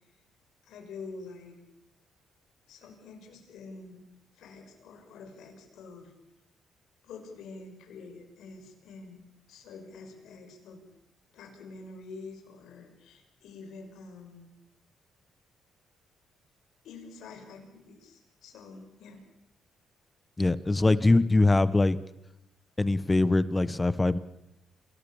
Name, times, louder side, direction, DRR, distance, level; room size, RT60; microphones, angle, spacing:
voice 1, 0.6-1.6 2.7-4.1 4.3-6.1 7.0-10.8 11.3-14.5 16.8-19.2, left 4 dB, 80° left, 4 dB, 5.9 m, -47 dB
voice 2, 20.4-22.0 22.8-24.2, left 2 dB, 20° left, 16 dB, 1.1 m, -23 dB
28.0 x 20.0 x 7.2 m, 0.89 s
cardioid pair, 90°, 0 cm